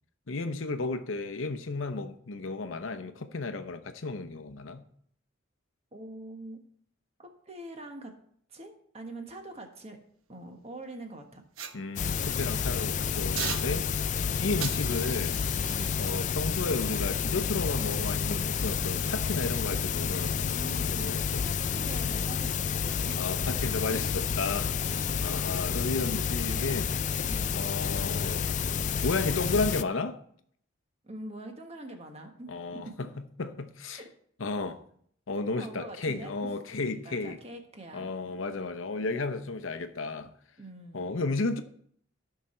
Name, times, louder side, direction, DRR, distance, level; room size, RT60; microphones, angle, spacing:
voice 1, 0.3-4.8 11.7-13.9 14.4-15.4 16.0-21.5 23.2-24.7 25.2-27.0 27.6-28.5 29.0-30.2 32.5-33.1 33.4-34.0 34.4-34.8 35.3-37.4 37.9-40.3 40.9-41.6, left 3 dB, 75° left, 0.8 m, -33 dB
voice 2, 5.9-6.6 7.2-8.1 8.5-10.0 10.3-11.4 15.7-16.1 20.3-21.1 21.4-23.7 24.9-25.2 27.2-27.6 31.0-32.9 33.9-34.0 35.6-36.5 36.8-38.1 40.6-41.2, right 1 dB, 30° right, 1.3 m, -44 dB
sound 1, 11.5-12.5 13.3-14.2 14.6-17.8 18.4-18.6, right 8 dB, 90° right, 0.9 m, -41 dB
sound 2, 12.0-29.8, left 6 dB, 35° left, 0.3 m, -30 dB
14.0 x 5.8 x 4.4 m
head